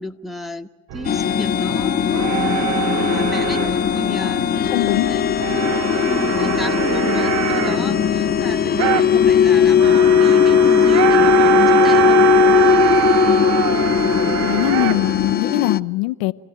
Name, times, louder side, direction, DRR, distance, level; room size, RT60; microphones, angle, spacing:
voice 1, 0.0-4.5 5.1-5.7 6.1-12.2 12.9-13.3, equal, ahead, 5 dB, 1.5 m, -32 dB
sound 1, 0.9-15.3, right 11 dB, 55° right, 0.9 m, -23 dB
sound 2, 1.0-15.8, left 9 dB, 30° left, 0.7 m, -18 dB
voice 2, 4.7-5.1 14.4-16.3, left 19 dB, 75° left, 10 dB, 0.7 m, -22 dB
28.5 x 16.0 x 9.1 m, 1.2 s
hypercardioid pair, 75°, 31 cm